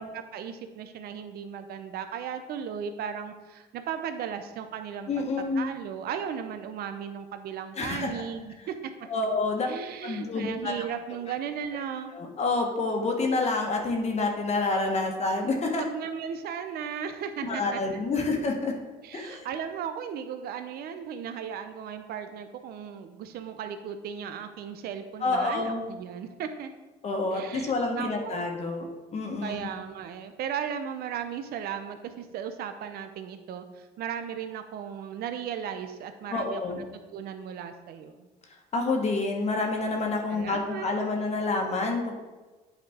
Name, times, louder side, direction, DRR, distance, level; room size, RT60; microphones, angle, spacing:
voice 1, 0.0-5.3 5.5-8.9 9.7-12.1 15.8-17.8 19.0-26.7 27.3-28.4 29.4-36.9 37.1-38.3 40.3-41.2, right 8 dB, 65° right, 8 dB, 0.6 m, -36 dB
voice 2, 5.1-5.7 7.7-8.3 9.1-9.7 10.0-10.8 12.1-15.8 17.4-18.7 19.1-19.5 25.2-25.8 27.0-28.8 29.1-29.7 36.3-36.8 38.7-42.2, left 3 dB, 40° left, 2 dB, 1.2 m, -28 dB
8.8 x 5.0 x 3.6 m, 1.2 s
cardioid pair, 110°, 17 cm